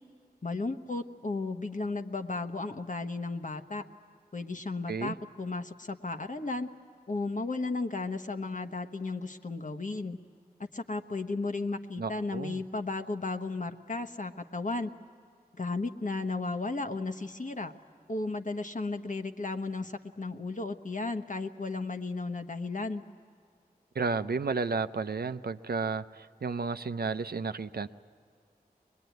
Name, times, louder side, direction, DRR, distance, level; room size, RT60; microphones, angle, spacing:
voice 1, 0.4-3.8 4.3-6.7 7.1-10.2 10.6-14.9 15.6-17.7 18.1-23.0, left 3 dB, 50° left, 6 dB, 1.2 m, -34 dB
voice 2, 12.0-12.6 24.0-27.9, right 4 dB, 75° right, 11 dB, 0.6 m, -32 dB
23.0 x 21.0 x 9.3 m, 2.2 s
wide cardioid pair, 40°, 16 cm